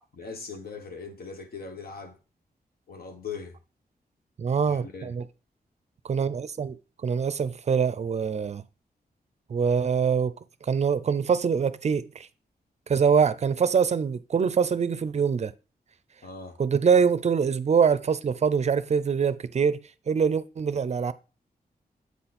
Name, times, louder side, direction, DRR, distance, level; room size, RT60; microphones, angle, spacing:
voice 1, 0.1-2.2 2.9-3.6 4.7-5.2 16.2-16.6, left 5 dB, 70° left, 1.3 m, -40 dB
voice 2, 4.4-5.2 6.0-6.8 7.0-8.6 9.5-10.4 10.6-12.3 12.9-15.5 16.6-21.1, right 6 dB, 45° right, 0.5 m, -24 dB
8.2 x 4.3 x 4.2 m
wide cardioid pair, 135°, 16 cm